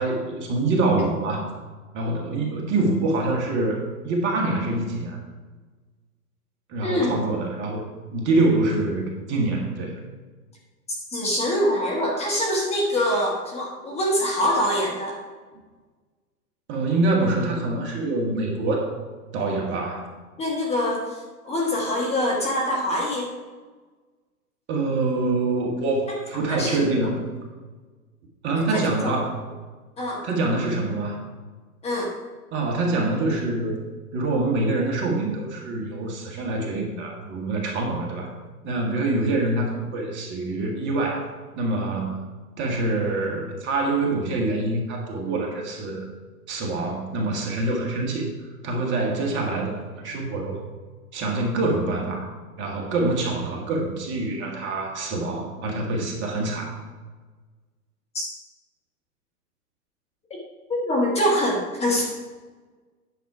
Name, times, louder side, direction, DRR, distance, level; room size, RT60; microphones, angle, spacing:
voice 1, 0.0-1.5 1.9-5.2 6.7-10.0 16.7-18.9 19.3-20.1 24.7-27.3 28.4-29.3 30.2-31.2 32.5-33.7 34.1-38.3 38.6-42.3 42.6-46.1 46.5-48.3 48.6-50.6 51.1-52.2 52.6-56.7, right 2 dB, 25° right, 0 dB, 1.4 m, -25 dB
voice 2, 6.8-7.1 11.1-15.2 20.4-23.3 26.1-26.2 26.5-26.8 28.7-29.1 30.0-30.2 31.8-32.1 58.1-58.3 60.7-62.0, left 1 dB, 15° left, -2 dB, 1.3 m, -24 dB
9.4 x 6.1 x 4.7 m, 1.4 s
hypercardioid pair, 135°, 47 cm